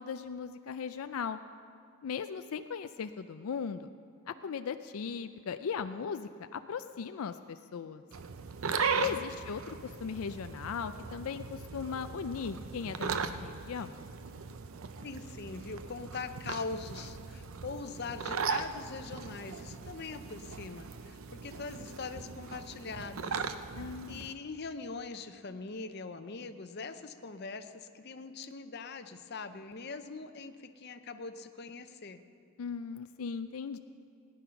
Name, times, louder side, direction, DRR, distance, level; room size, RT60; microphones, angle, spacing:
voice 1, 0.0-1.4 2.0-3.9 4.3-8.0 8.9-14.0 23.7-24.3 32.6-33.8, left 6 dB, 80° left, 10 dB, 0.4 m, -38 dB
sound 1, 8.1-24.3, right 5 dB, 75° right, 0.6 m, -38 dB
voice 2, 8.8-9.2 15.0-23.4 24.1-32.2, left 4 dB, 50° left, 9 dB, 0.7 m, -42 dB
18.0 x 10.0 x 5.7 m, 2.4 s
head